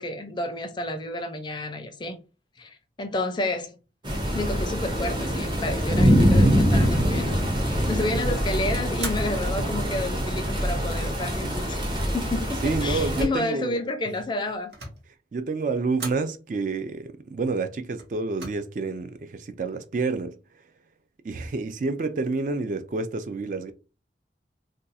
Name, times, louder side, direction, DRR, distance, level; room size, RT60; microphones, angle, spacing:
voice 1, 0.0-2.2 2.6-3.8 4.3-11.8 12.1-14.7, left 1 dB, 25° left, 0.4 m, -30 dB
sound 1, 4.0-13.2, equal, 25° right, 0.7 m, -24 dB
sound 2, 8.9-9.6 10.3-10.9 14.2-15.1 15.9-16.3 18.0-18.5, right 3 dB, 70° right, 1.0 m, -38 dB
voice 2, 12.6-13.8 15.3-20.4 21.2-23.7, right 3 dB, 45° right, 0.3 m, -29 dB
2.5 x 2.3 x 4.0 m
head